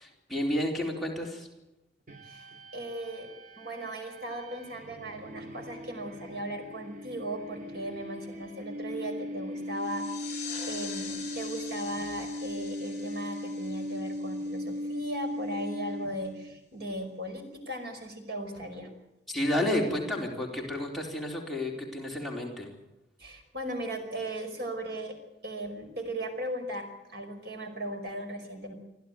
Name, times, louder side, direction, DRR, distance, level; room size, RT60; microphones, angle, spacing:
voice 1, 0.0-1.5 19.3-22.7, left 1 dB, ahead, -2 dB, 4.1 m, -31 dB
sound 1, 2.1-16.5, left 1 dB, 45° right, 2.3 m, -39 dB
voice 2, 2.2-3.3 3.5-18.9 23.2-25.2 25.4-28.7, right 1 dB, 60° right, 5 dB, 5.2 m, -37 dB
sound 2, 9.7-15.0, left 6 dB, 40° left, 7.5 m, -44 dB
25.5 x 15.0 x 9.5 m, 0.91 s
head